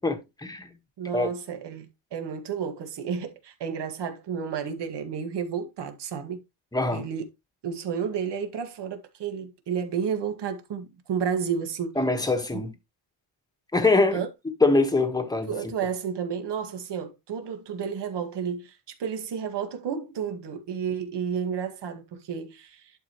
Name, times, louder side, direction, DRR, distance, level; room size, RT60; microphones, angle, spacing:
voice 1, 0.0-0.7 1.1-1.3 6.7-7.0 12.0-12.7 13.7-14.2 14.6-15.5, left 3 dB, 10° left, 1.4 m, -23 dB
voice 2, 1.0-6.4 6.9-7.3 7.6-12.0 12.5-12.6 14.1-14.3 15.4-22.9, right 7 dB, 60° right, 1.9 m, -31 dB
11.0 x 5.2 x 3.0 m
cardioid pair, 160°, 47 cm